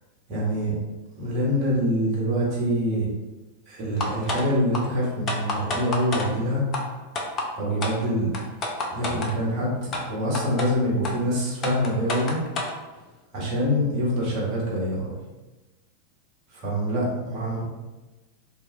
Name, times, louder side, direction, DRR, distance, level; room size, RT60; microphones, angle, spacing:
voice 1, 0.3-0.8 1.2-3.1 3.7-6.6 7.6-8.3 8.9-12.4 13.3-15.1 16.6-17.6, equal, 40° right, -5 dB, 1.0 m, -25 dB
sound 1, 4.0-4.4 4.7-4.8 5.3-6.3 6.7-6.8 7.2-7.5 7.8-7.9 8.3-9.3 9.9-10.0 10.3-10.7 11.0-11.1 11.6-12.7, left 2 dB, 30° left, 0.5 m, -28 dB
2.7 x 2.3 x 2.6 m, 1.1 s
figure-of-eight pair, 90°, 0 cm